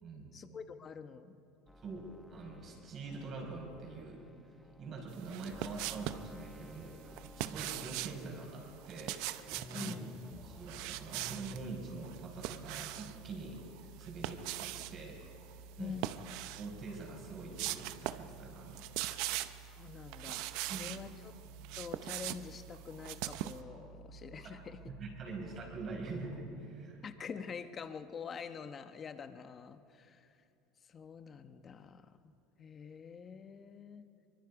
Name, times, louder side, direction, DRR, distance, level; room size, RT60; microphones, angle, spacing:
voice 1, 0.3-1.3 9.7-10.2 15.8-16.0 19.7-21.3 21.7-24.8 27.0-30.3 30.9-32.3 32.6-34.1, left 6 dB, 30° left, 9 dB, 1.0 m, -46 dB
sound 1, 1.7-11.7, left 2 dB, 5° left, 0.7 m, -54 dB
voice 2, 1.8-4.2 4.8-9.9 10.4-15.2 15.8-16.0 16.6-18.9 20.7-21.0 24.4-24.6 24.9-27.0, right 3 dB, 40° right, 1 dB, 5.4 m, -45 dB
sound 2, 5.2-6.3 7.2-8.2 8.8-10.0 10.6-11.6 12.0-13.2 14.0-14.9 15.9-16.7 17.1-17.2 17.6-18.3 18.6-19.7 20.1-21.0 21.5-23.6, right 15 dB, 65° right, 0.7 m, -40 dB
sound 3, 10.3-26.5, right 5 dB, 85° right, 4.4 m, -54 dB
24.0 x 22.5 x 4.9 m, 2.6 s
supercardioid pair, 125°, 0 cm